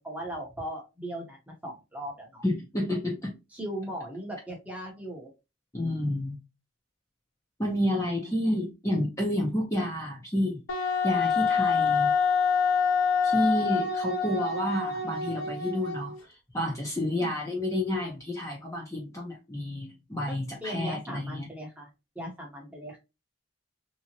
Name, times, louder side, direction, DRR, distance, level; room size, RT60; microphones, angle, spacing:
voice 1, 0.0-2.4 3.5-5.3 8.4-8.5 17.2-17.3 20.3-23.0, equal, 5° right, 1.0 m, -38 dB
voice 2, 2.4-3.3 5.7-6.4 7.6-12.1 13.2-16.1 16.5-21.5, left 1 dB, 15° left, 0.8 m, -30 dB
Wind instrument woodwind instrument, 10.7-16.2, left 5 dB, 85° left, 1.2 m, -26 dB
3.5 x 2.9 x 2.9 m
head